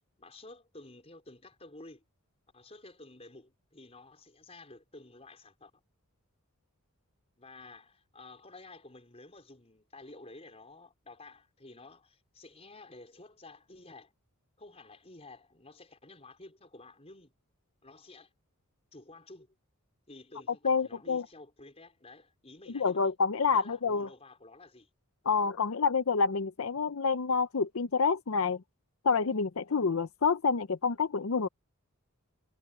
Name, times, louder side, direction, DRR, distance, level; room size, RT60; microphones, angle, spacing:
voice 1, 0.2-2.0 2.5-5.8 7.4-14.1 14.6-17.3 17.8-18.3 18.9-19.5 20.1-23.1 23.5-24.9, left 2 dB, 30° left, 4.8 m, -52 dB
voice 2, 20.6-21.2 22.7-24.1 25.3-28.6 29.0-31.5, left 5 dB, 70° left, 0.7 m, -28 dB
head